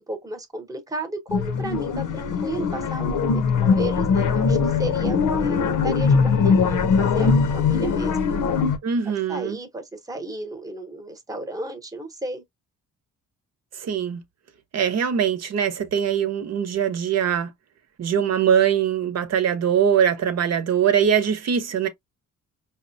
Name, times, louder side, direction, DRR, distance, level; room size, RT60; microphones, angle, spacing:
voice 1, 0.0-8.2 9.3-12.4, right 1 dB, 10° right, 0.9 m, -33 dB
sound 1, 1.3-8.8, left 5 dB, 80° left, 0.8 m, -21 dB
voice 2, 8.8-9.6 13.8-14.2 14.7-17.5 18.0-21.9, right 8 dB, 55° right, 0.9 m, -22 dB
5.2 x 2.2 x 2.6 m
cardioid pair, 135°, 31 cm